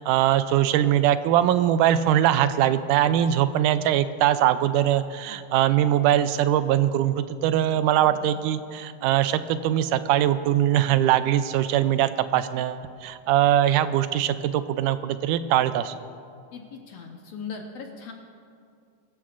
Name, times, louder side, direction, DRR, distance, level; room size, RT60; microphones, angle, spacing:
voice 1, 0.0-15.9, right 11 dB, 80° right, 12 dB, 2.0 m, -22 dB
voice 2, 8.1-8.4 16.5-18.1, left 5 dB, 65° left, 2 dB, 1.7 m, -39 dB
23.0 x 14.5 x 2.5 m, 2.3 s
omnidirectional pair, 3.8 m